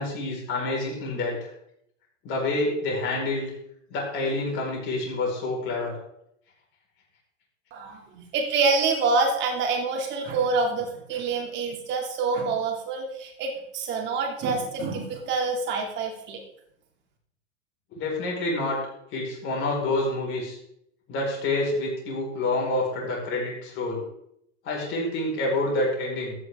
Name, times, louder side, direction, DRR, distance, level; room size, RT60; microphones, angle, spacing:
voice 1, 0.0-1.5 2.2-3.5 3.9-5.9 17.9-18.8 19.1-20.6 21.1-24.0 24.6-26.3, left 2 dB, 30° left, -2 dB, 4.9 m, -27 dB
voice 2, 7.7-16.4, right 4 dB, 30° right, 2 dB, 2.5 m, -26 dB
13.5 x 9.4 x 3.6 m, 0.77 s
supercardioid pair, 155°, 39 cm